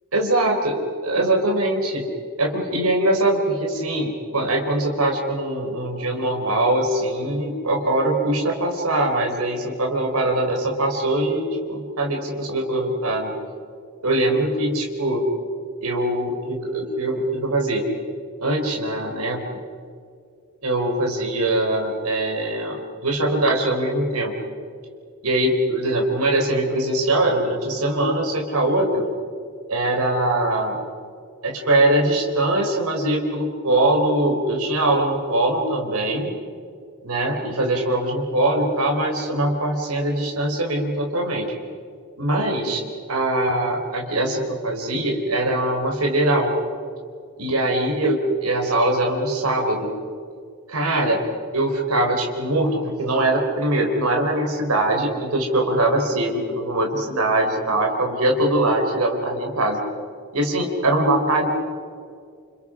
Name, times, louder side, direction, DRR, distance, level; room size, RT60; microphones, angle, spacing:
voice 1, 0.1-2.1 2.4-13.4 14.0-15.2 15.8-17.9 18.4-19.4 20.6-24.3 25.2-29.1 29.7-30.8 31.4-36.3 37.0-41.5 42.2-42.8 43.1-46.6 47.4-49.9 50.7-51.2 51.5-59.8 60.3-61.5, right 1 dB, 85° right, 1 dB, 3.9 m, -22 dB
29.5 x 29.0 x 5.0 m, 2.3 s
head